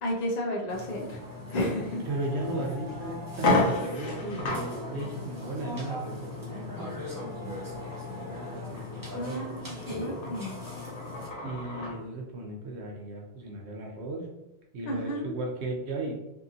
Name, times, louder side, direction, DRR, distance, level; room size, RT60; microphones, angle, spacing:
voice 1, 0.0-1.2 1.5-2.1 9.1-10.6 14.9-15.3, equal, 50° left, -2 dB, 0.5 m, -32 dB
Burping eructation, 0.7-11.3, left 3 dB, 25° right, 0.5 m, -40 dB
voice 2, 2.1-9.5 11.4-14.3 14.7-16.2, right 2 dB, 75° right, 0 dB, 0.9 m, -36 dB
sound 1, 2.4-2.5 2.9-3.0 3.3-12.0, left 2 dB, 85° left, 1.0 m, -33 dB
2.8 x 2.7 x 2.4 m, 0.91 s
omnidirectional pair, 1.2 m